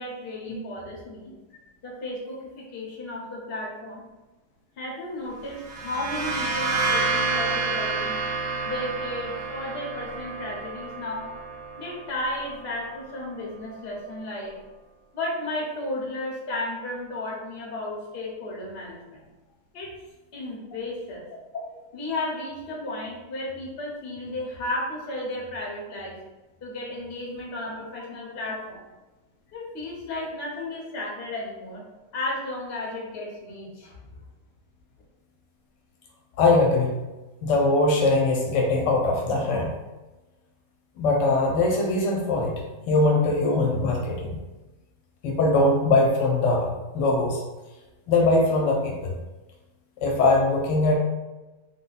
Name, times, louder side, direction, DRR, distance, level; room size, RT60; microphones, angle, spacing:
voice 1, 0.0-1.3 1.8-4.1 4.8-8.1 8.6-11.3 11.8-14.5 15.1-19.2 19.7-19.9 20.3-21.2 21.5-26.1 26.6-28.8 29.5-31.8 32.1-34.1, left 1 dB, 45° left, -3 dB, 0.9 m, -34 dB
sound 1, 5.5-13.1, right 3 dB, 80° right, 1.3 m, -29 dB
voice 2, 36.4-36.9 37.4-39.7 41.0-42.5 42.9-44.4 45.2-47.4 48.1-49.2 50.0-50.9, left 2 dB, 75° left, 0 dB, 1.2 m, -21 dB
3.4 x 2.1 x 3.9 m, 1.1 s
omnidirectional pair, 1.9 m